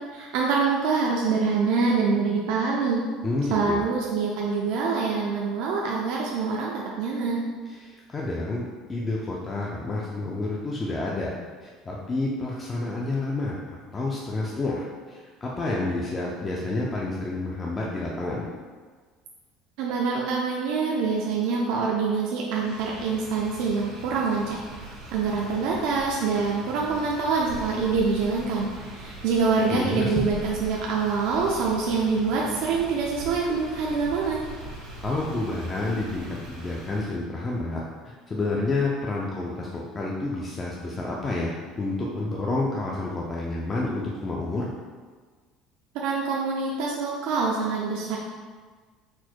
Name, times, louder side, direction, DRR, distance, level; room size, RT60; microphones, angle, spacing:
voice 1, 0.1-3.0 3.5-7.4 19.8-24.6 25.1-34.4 46.0-48.2, right 4 dB, 65° right, -3 dB, 0.4 m, -25 dB
voice 2, 3.2-3.8 7.7-11.3 11.6-18.5 29.7-30.3 34.7-44.7, left 2 dB, 15° left, -3 dB, 0.3 m, -29 dB
Motor vehicle (road), 22.5-37.2, right 1 dB, 90° right, 1.4 m, -41 dB
4.2 x 2.2 x 4.4 m, 1.5 s
cardioid pair, 175°, 0 cm